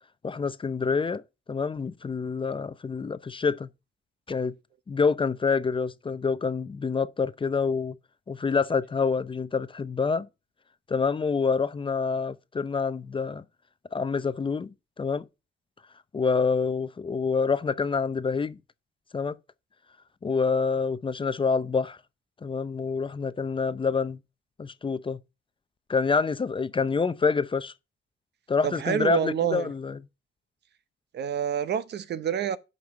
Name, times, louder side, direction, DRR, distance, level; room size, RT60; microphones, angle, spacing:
voice 1, 0.2-1.2 1.5-3.7 4.3-4.5 4.9-7.9 8.3-10.3 10.9-13.4 13.9-15.3 16.1-18.6 19.1-19.3 20.2-22.0 22.4-24.2 24.6-25.2 25.9-27.7 28.5-30.0, left 5 dB, 25° left, 0.6 m, -27 dB
voice 2, 28.6-29.7 31.1-32.6, right 9 dB, 60° right, 0.8 m, -27 dB
7.8 x 5.5 x 5.6 m
cardioid pair, 90°, 20 cm